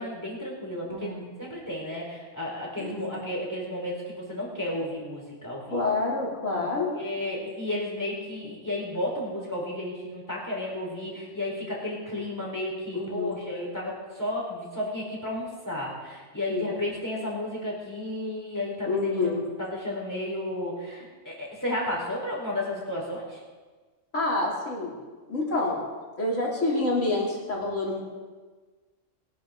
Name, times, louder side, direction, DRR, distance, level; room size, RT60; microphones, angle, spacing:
voice 1, 0.0-1.1 1.4-5.8 6.6-6.7 6.9-19.1 19.6-23.4, left 1 dB, 15° left, -4 dB, 4.6 m, -33 dB
voice 2, 0.9-1.3 2.8-3.2 5.7-6.9 12.9-13.4 16.5-16.7 18.9-19.4 24.1-25.0 25.3-25.8 26.2-28.0, left 2 dB, 80° left, -4 dB, 4.1 m, -27 dB
22.5 x 11.5 x 4.0 m, 1.4 s
omnidirectional pair, 1.3 m